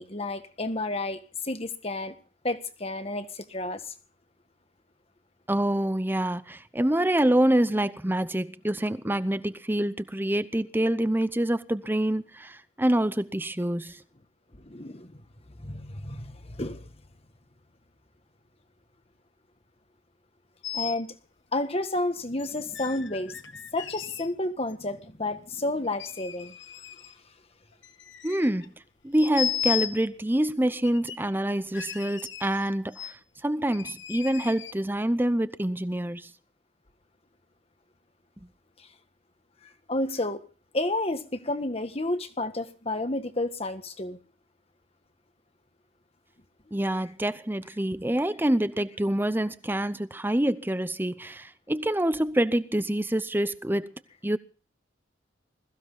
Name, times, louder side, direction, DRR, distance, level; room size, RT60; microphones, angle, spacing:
voice 1, 0.0-2.1 2.4-3.8 14.5-15.2 15.6-16.9 20.7-21.2 21.5-23.4 23.7-26.5 39.9-40.4 40.7-44.2, left 2 dB, 30° left, 1.5 m, -31 dB
voice 2, 5.5-14.0 28.2-28.7 29.0-33.1 33.4-36.3 46.7-53.9 54.2-54.4, right 1 dB, 10° right, 0.7 m, -26 dB
sound 1, 20.6-21.0 22.4-24.3 24.7-24.8 25.8-27.1 27.7-28.7 29.1-30.0 30.8-31.3 31.7-32.7 32.9-33.1 33.7-34.8, left 10 dB, 65° left, 1.3 m, -35 dB
21.5 x 15.5 x 3.9 m
head